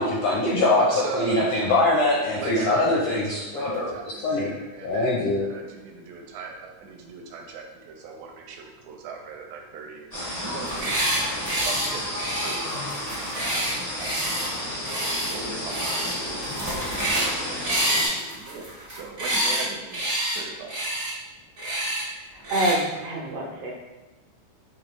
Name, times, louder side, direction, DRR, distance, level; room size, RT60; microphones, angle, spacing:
voice 1, 0.0-4.5 4.8-5.5, left 2 dB, 80° left, -4 dB, 1.4 m, -23 dB
voice 2, 0.8-1.4 2.4-17.6 17.9-20.9, right 5 dB, 85° right, 2 dB, 2.0 m, -39 dB
sound 1, 10.1-18.1, left 1 dB, 45° left, 0.4 m, -32 dB
sound 2, 10.6-11.2 11.4-11.9 12.2-14.5 14.8-15.3 15.7-16.1 16.4-17.3 17.6-19.6 19.9-20.4 20.7-21.1 21.6-22.0 22.4-22.7, right 1 dB, 50° right, 0.6 m, -27 dB
voice 3, 22.1-23.7, right 1 dB, 70° right, -3 dB, 1.6 m, -27 dB
5.2 x 3.1 x 3.1 m, 1.1 s
omnidirectional pair, 3.3 m